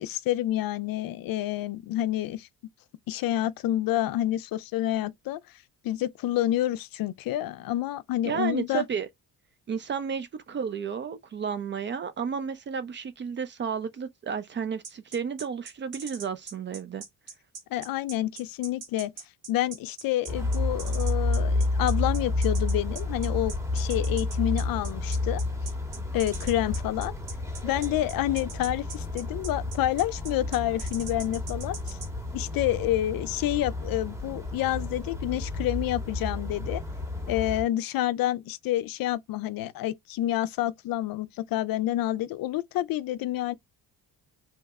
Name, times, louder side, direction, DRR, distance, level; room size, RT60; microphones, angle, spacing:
voice 1, 0.0-2.5 3.1-5.4 5.8-8.8 17.7-19.1 19.5-25.4 26.1-27.1 27.6-32.0 32.3-36.8 37.3-43.5, left 13 dB, 65° left, 0.5 m, -28 dB
voice 2, 8.2-9.1 9.7-17.0, right 7 dB, 30° right, 0.4 m, -32 dB
sound 1, 14.8-32.1, right 5 dB, 80° right, 1.5 m, -41 dB
sound 2, 20.3-37.6, left 2 dB, 10° right, 0.8 m, -31 dB
2.9 x 2.1 x 3.5 m
cardioid pair, 115°, 37 cm